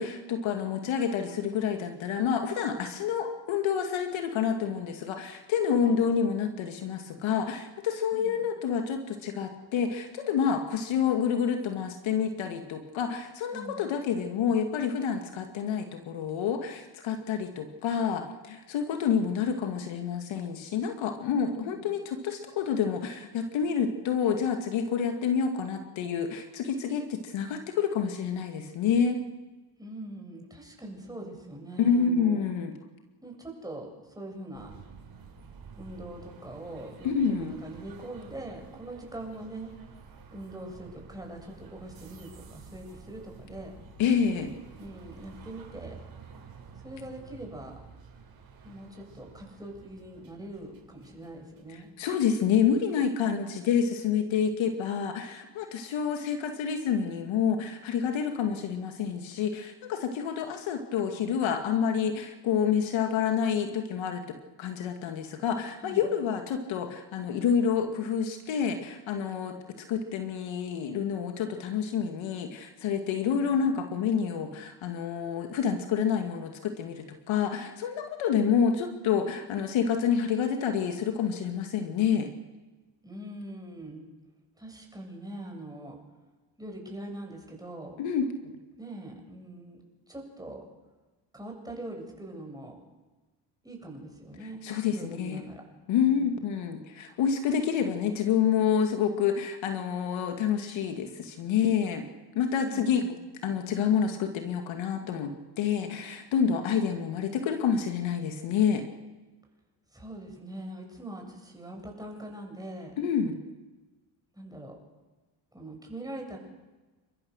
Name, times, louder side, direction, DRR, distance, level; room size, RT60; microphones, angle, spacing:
voice 1, 0.0-29.2 31.8-32.7 37.0-37.5 44.0-44.5 52.0-69.6 69.9-82.3 88.0-88.5 94.6-95.4 95.9-102.0 102.3-103.0 103.4-108.8 113.0-113.4, left 7 dB, 70° left, 5 dB, 2.4 m, -28 dB
voice 2, 8.1-8.4 13.5-13.9 21.5-21.9 29.8-32.4 33.2-34.7 35.8-39.7 40.3-43.7 44.8-46.0 46.8-47.7 48.6-51.9 53.2-53.7 65.8-66.0 73.2-73.7 83.0-84.1 84.6-86.0 86.6-88.0 88.8-89.8 90.1-90.6 91.3-92.8 93.6-95.6 96.0-96.4 102.6-103.2 109.9-112.9 114.3-114.8 115.5-116.4, right 1 dB, 10° right, 1 dB, 7.4 m, -42 dB
sound 1, 34.5-52.3, right 5 dB, 45° right, 5.7 m, -50 dB
29.5 x 13.5 x 6.7 m, 1.2 s
supercardioid pair, 70°, 49 cm